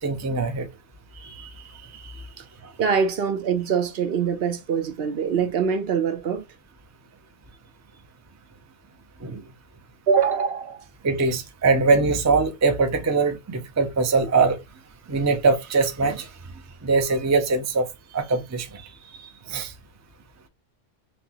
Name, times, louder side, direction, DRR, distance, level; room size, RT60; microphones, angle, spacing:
voice 1, 0.0-0.7 1.2-1.7 1.9-2.1 2.6-2.7 9.2-9.4 11.0-14.6 15.1-16.3 16.8-18.9 19.2-19.7, right 4 dB, 20° right, 0.4 m, -22 dB
voice 2, 2.8-6.4 10.1-10.8, right 6 dB, 65° right, 0.8 m, -23 dB
5.8 x 2.1 x 2.8 m
omnidirectional pair, 1.2 m